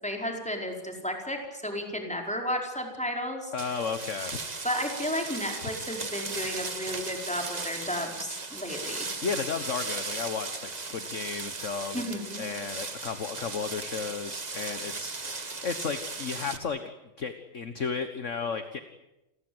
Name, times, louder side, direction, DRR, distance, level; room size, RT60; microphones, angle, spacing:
voice 1, 0.0-3.5 4.6-9.1 11.9-12.4, equal, 5° left, 2 dB, 4.8 m, -33 dB
voice 2, 3.5-4.4 5.6-5.7 9.2-16.9 17.2-18.8, left 5 dB, 40° left, 9 dB, 1.6 m, -34 dB
sound 1, 3.6-16.6, right 3 dB, 25° right, 1.3 m, -37 dB
29.5 x 21.5 x 8.0 m, 0.96 s
omnidirectional pair, 2.1 m